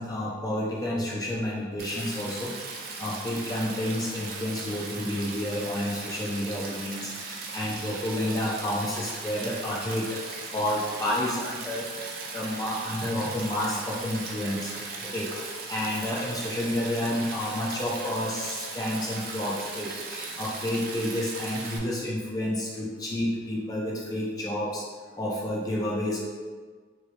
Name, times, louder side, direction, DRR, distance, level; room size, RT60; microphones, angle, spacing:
voice 1, 0.0-14.7 15.0-15.3 15.7-24.8 25.2-26.2, left 1 dB, 20° left, -4 dB, 0.3 m, -30 dB
Stream, 1.8-21.8, right 3 dB, 45° right, 0.4 m, -38 dB
3.0 x 2.7 x 3.1 m, 1.5 s
head